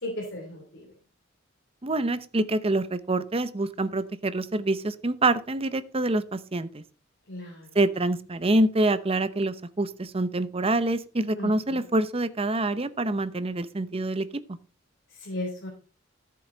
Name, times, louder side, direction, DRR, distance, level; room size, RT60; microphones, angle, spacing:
voice 1, 0.0-0.8 7.3-7.7 11.4-11.8 15.1-15.7, left 1 dB, 65° left, -1 dB, 3.2 m, -35 dB
voice 2, 1.8-6.8 7.7-14.3, right 2 dB, 30° right, 13 dB, 0.8 m, -26 dB
14.0 x 7.7 x 3.9 m, 0.36 s
head